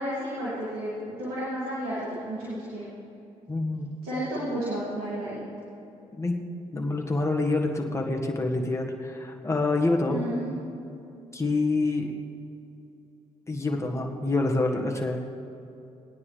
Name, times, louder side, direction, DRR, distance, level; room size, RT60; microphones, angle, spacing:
voice 1, 0.0-2.9 4.0-5.4 10.1-10.5, right 1 dB, 85° right, -9 dB, 2.8 m, -32 dB
voice 2, 3.5-3.9 6.1-6.4 6.7-10.2 11.3-12.1 13.5-15.3, left 2 dB, 20° left, 1 dB, 1.6 m, -27 dB
19.0 x 9.6 x 3.4 m, 2.8 s
hypercardioid pair, 50°, 15 cm